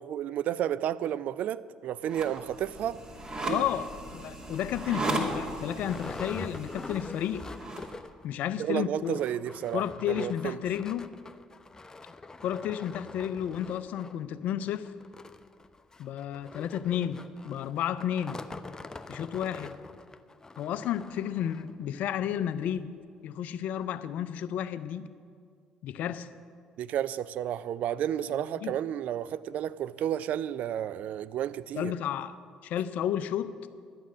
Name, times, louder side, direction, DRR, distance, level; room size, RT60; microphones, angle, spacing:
voice 1, 0.0-3.0 3.4-3.7 8.6-10.6 26.8-31.9, right 10 dB, 60° right, 0.4 m, -32 dB
sound 1, 2.0-7.9, right 2 dB, 30° right, 2.5 m, -36 dB
voice 2, 3.5-7.5 8.2-9.2 9.7-11.1 12.4-14.9 16.0-18.4 19.1-19.8 20.6-22.9 23.2-25.1 25.8-26.3 28.6-28.7 31.8-32.4 32.6-33.5, left 10 dB, 65° left, 0.5 m, -32 dB
sound 2, 4.4-4.5 5.0-5.1 5.3-8.3 8.6-8.7 8.9-21.7 22.3-22.4 22.8-22.9, left 3 dB, 20° left, 0.6 m, -45 dB
12.5 x 9.4 x 6.2 m
hypercardioid pair, 55°, 3 cm